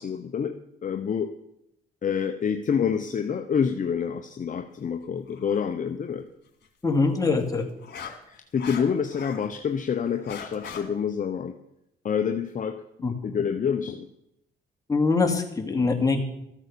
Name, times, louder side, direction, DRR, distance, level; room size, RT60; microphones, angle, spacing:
voice 1, 0.0-1.3 2.0-6.3 8.3-11.6 12.0-12.8 13.2-14.1, left 7 dB, 40° left, 6 dB, 0.9 m, -27 dB
sound 1, 5.3-5.6 7.4-9.5 9.9-10.8, left 7 dB, 55° left, 2.8 m, -39 dB
voice 2, 6.8-7.7 13.0-13.1 14.9-16.2, left 4 dB, 15° left, 1 dB, 2.6 m, -23 dB
14.0 x 8.7 x 6.9 m, 0.80 s
cardioid pair, 90°, 20 cm